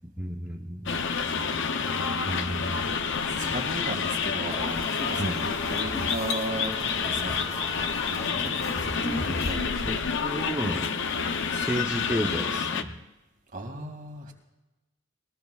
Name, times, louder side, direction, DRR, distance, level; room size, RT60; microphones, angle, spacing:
voice 1, 0.2-0.9 2.3-2.9 5.2-5.4 9.8-10.9 11.5-12.9, equal, 5° right, 0 dB, 0.7 m, -32 dB
sound 1, 0.9-12.8, left 6 dB, 60° left, 0.7 m, -29 dB
voice 2, 3.4-10.1 13.5-14.3, right 1 dB, 40° right, 3 dB, 2.2 m, -37 dB
sound 2, 4.5-9.6, equal, 15° left, 2.5 m, -37 dB
21.0 x 20.0 x 2.4 m, 1.1 s
head